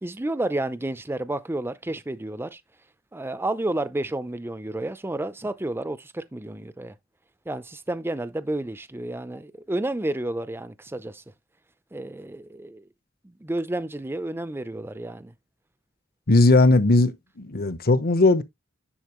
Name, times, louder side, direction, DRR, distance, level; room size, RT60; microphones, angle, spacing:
voice 1, 0.0-2.6 3.1-6.9 7.5-11.2 11.9-12.8 13.2-15.3, right 1 dB, 10° right, 0.5 m, -31 dB
voice 2, 16.3-18.4, left 2 dB, 50° left, 0.9 m, -18 dB
10.0 x 4.3 x 3.1 m
head